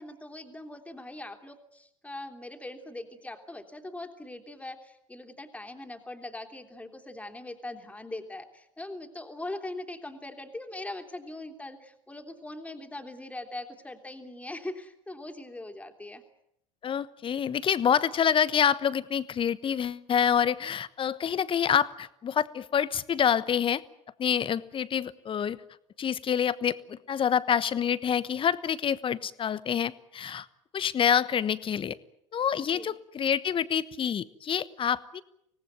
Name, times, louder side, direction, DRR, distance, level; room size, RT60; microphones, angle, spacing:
voice 1, 0.0-16.2 32.6-32.9, left 2 dB, 10° left, 4 dB, 3.3 m, -41 dB
voice 2, 16.8-23.8 24.2-25.6 26.0-30.5 30.7-32.0 32.3-35.2, left 8 dB, 30° left, 17 dB, 1.1 m, -27 dB
25.5 x 18.5 x 9.4 m, 0.77 s
figure-of-eight pair, 70°, 17 cm